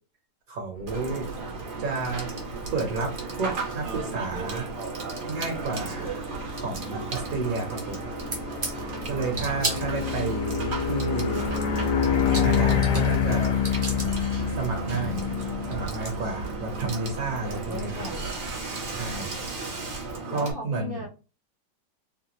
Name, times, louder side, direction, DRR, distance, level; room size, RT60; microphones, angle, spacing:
voice 1, 0.5-1.3 1.8-2.3 2.7-4.7 5.2-6.2 6.5-8.0 9.0-11.4 12.3-13.6 14.5-15.2 15.7-17.9 18.9-19.3 20.3-21.0, right 3 dB, 60° right, 2 dB, 1.2 m, -31 dB
sound 1, 0.8-20.1, left 6 dB, 75° left, 1.4 m, -30 dB
Water / Water tap faucet / Sink (filling or washing), 0.9-20.5, right 3 dB, 85° right, 0.4 m, -36 dB
sound 2, 8.3-8.7 9.3-10.3 11.8-11.9 12.1-13.2 13.4-14.1 15.4-15.5 15.7-16.1, right 2 dB, 25° right, 0.7 m, -32 dB
voice 2, 17.4-18.5 20.3-21.1, left 2 dB, 50° left, -5 dB, 0.7 m, -38 dB
3.3 x 2.3 x 2.9 m, 0.33 s
omnidirectional pair, 1.9 m